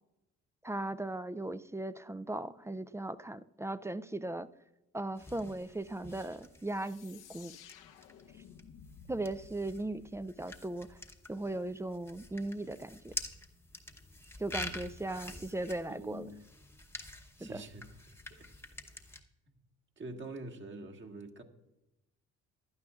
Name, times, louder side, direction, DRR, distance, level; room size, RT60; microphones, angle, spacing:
voice 1, 0.6-4.5 4.9-7.5 9.1-11.0 11.3-13.1 14.4-16.3 17.4-17.6, right 2 dB, 10° right, 14 dB, 0.3 m, -38 dB
sound 1, 5.2-19.2, left 1 dB, 10° left, 0.9 m, -47 dB
sound 2, 6.7-11.2, left 6 dB, 90° left, 1.0 m, -55 dB
voice 2, 15.9-16.4 17.4-17.8 18.1-18.5 19.5-19.6 20.0-21.4, right 2 dB, 40° right, 2 dB, 1.6 m, -46 dB
16.0 x 11.5 x 2.4 m, 0.94 s
cardioid pair, 90°, 30 cm